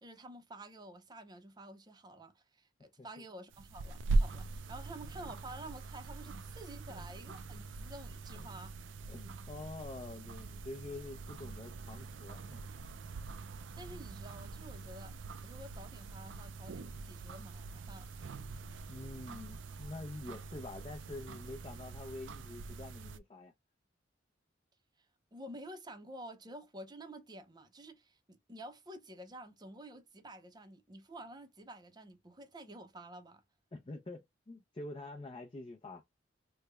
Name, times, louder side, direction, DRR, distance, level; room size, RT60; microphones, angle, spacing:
voice 1, 0.0-8.8 13.8-15.1 15.4-18.1 25.0-25.1 25.3-33.4, right 1 dB, 25° right, 0.6 m, -50 dB
sound 1, 3.5-23.2, right 3 dB, 80° right, 0.4 m, -41 dB
voice 2, 9.1-12.6 18.9-23.5 33.7-36.0, left 2 dB, 30° left, 0.5 m, -46 dB
3.2 x 2.2 x 3.4 m
head